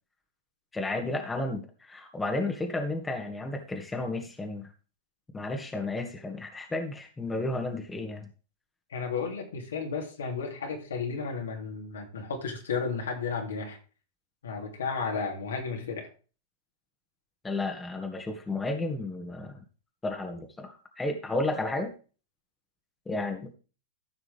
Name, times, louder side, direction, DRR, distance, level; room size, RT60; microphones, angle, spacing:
voice 1, 0.7-4.7 5.3-8.3 17.4-19.6 20.0-21.9 23.1-23.5, left 2 dB, 10° left, 4 dB, 2.0 m, -32 dB
voice 2, 8.9-13.8 14.4-16.1, left 5 dB, 75° left, 1 dB, 3.3 m, -33 dB
15.0 x 6.0 x 3.6 m, 0.35 s
hypercardioid pair, 100°, 0 cm